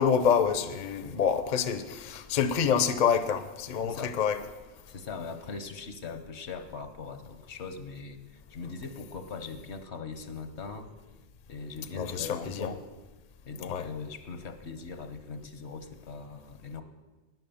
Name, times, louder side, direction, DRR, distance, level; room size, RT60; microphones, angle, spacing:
voice 1, 0.0-4.4 11.9-12.7 13.7-13.9, left 7 dB, 50° left, 12 dB, 0.8 m, -27 dB
voice 2, 3.8-4.2 4.9-10.9 11.5-12.9 13.5-16.8, left 4 dB, 75° left, 10 dB, 1.3 m, -40 dB
12.0 x 9.6 x 7.0 m, 1.2 s
omnidirectional pair, 1.1 m